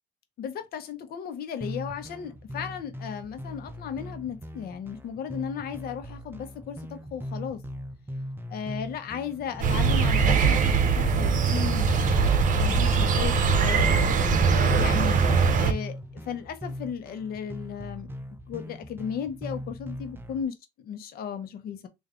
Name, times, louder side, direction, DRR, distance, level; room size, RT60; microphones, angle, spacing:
voice 1, 0.4-7.6 8.5-12.3 12.6-14.1 14.5-15.2 15.6-16.0 16.3-18.1 18.5-20.5 20.9-21.9, left 8 dB, 65° left, 0.9 m, -35 dB
sound 1, 1.6-20.4, left 1 dB, 10° right, 0.6 m, -40 dB
sound 2, 9.6-15.7, right 5 dB, 50° right, 0.8 m, -22 dB
sound 3, 12.2-15.7, left 1 dB, 20° left, 1.0 m, -36 dB
3.3 x 2.6 x 3.7 m
cardioid pair, 110°, 17 cm